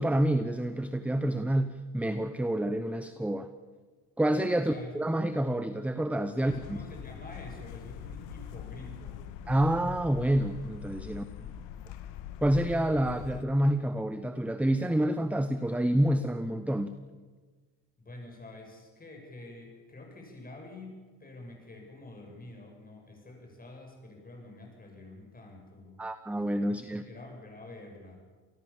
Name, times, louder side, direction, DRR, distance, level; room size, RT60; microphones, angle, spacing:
voice 1, 0.0-3.5 4.2-6.8 9.5-11.2 12.4-16.9 26.0-27.0, right 1 dB, 5° right, 10 dB, 0.9 m, -28 dB
voice 2, 4.6-5.0 6.4-9.3 11.1-11.6 18.0-26.0 26.7-28.2, left 2 dB, 20° left, 2 dB, 7.6 m, -48 dB
sound 1, 6.5-13.4, left 9 dB, 80° left, 2.0 m, -43 dB
27.5 x 19.5 x 7.3 m, 1.4 s
cardioid pair, 120°, 43 cm